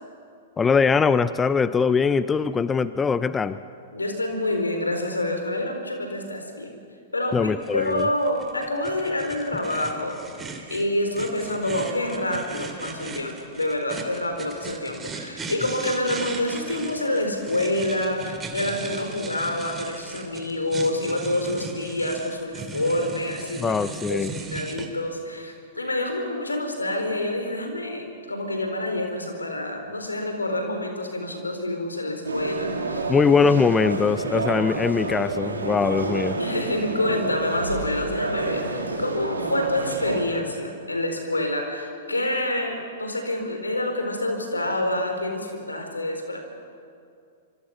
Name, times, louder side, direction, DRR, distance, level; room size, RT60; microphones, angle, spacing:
voice 1, 0.6-3.6 7.3-8.1 23.6-24.3 33.1-36.4, left 5 dB, 15° left, 14 dB, 0.7 m, -21 dB
voice 2, 3.9-6.8 7.1-10.2 10.7-23.8 24.1-33.2 36.3-46.5, left 1 dB, 90° left, 5 dB, 4.1 m, -27 dB
sound 1, 7.6-24.9, right 4 dB, 15° right, 2.9 m, -38 dB
sound 2, 32.2-40.3, right 3 dB, 85° right, 3.0 m, -29 dB
26.0 x 25.0 x 5.8 m, 2.4 s
figure-of-eight pair, 105°, 0 cm